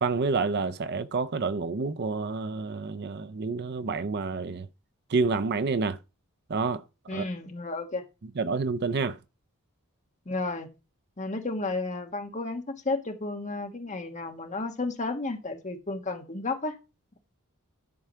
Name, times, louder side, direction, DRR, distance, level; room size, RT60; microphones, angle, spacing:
voice 1, 0.0-4.7 5.1-6.0 6.5-6.8 7.1-7.3 8.4-9.2, right 4 dB, 45° right, 0.5 m, -28 dB
voice 2, 7.1-8.0 10.2-10.7 11.2-16.8, left 3 dB, 35° left, 1.4 m, -32 dB
11.0 x 4.7 x 5.6 m
head